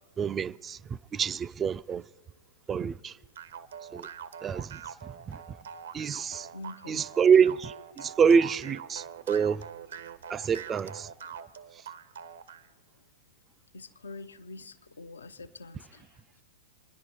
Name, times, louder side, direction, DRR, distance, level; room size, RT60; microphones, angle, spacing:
voice 1, 0.2-2.0 2.7-3.1 3.9-4.1 4.4-5.6 5.9-6.5 6.9-9.6 10.3-11.1, right 6 dB, 20° right, 0.3 m, -26 dB
sound 1, 3.3-12.7, right 7 dB, 70° right, 0.8 m, -44 dB
voice 2, 6.5-7.1 13.7-16.4, left 3 dB, 80° left, 0.6 m, -45 dB
25.5 x 10.5 x 4.5 m
hypercardioid pair, 110°, 0 cm